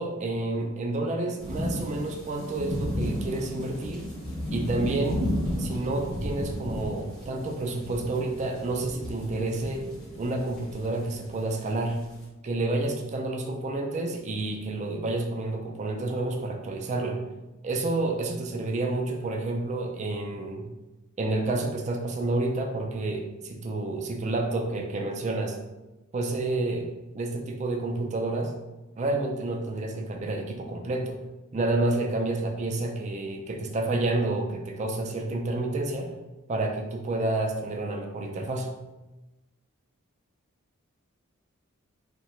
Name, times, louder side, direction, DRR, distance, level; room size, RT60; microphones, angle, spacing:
voice 1, 0.0-4.0 4.5-5.2 5.6-9.8 10.2-12.0 12.4-17.2 17.6-20.6 21.2-25.6 26.1-28.5 29.0-31.2 31.5-36.1 36.5-38.7, right 2 dB, 35° right, 2 dB, 0.3 m, -29 dB
sound 1, 1.4-12.2, left 1 dB, 5° left, 0.7 m, -33 dB
2.7 x 2.1 x 3.0 m, 1.1 s
head